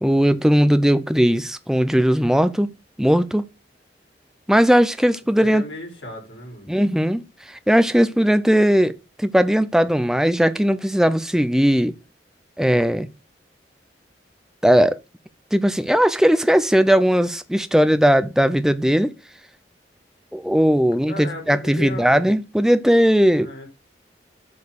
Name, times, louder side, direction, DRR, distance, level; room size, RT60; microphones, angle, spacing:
voice 1, 0.0-2.7 3.0-3.5 4.5-5.6 6.7-8.9 9.2-11.9 12.6-13.1 14.6-15.0 15.5-19.1 20.3-23.5, equal, 5° right, 0.6 m, -18 dB
voice 2, 5.4-6.7 21.1-22.3 23.4-23.7, left 1 dB, 90° left, 4.4 m, -35 dB
8.4 x 4.6 x 6.6 m
head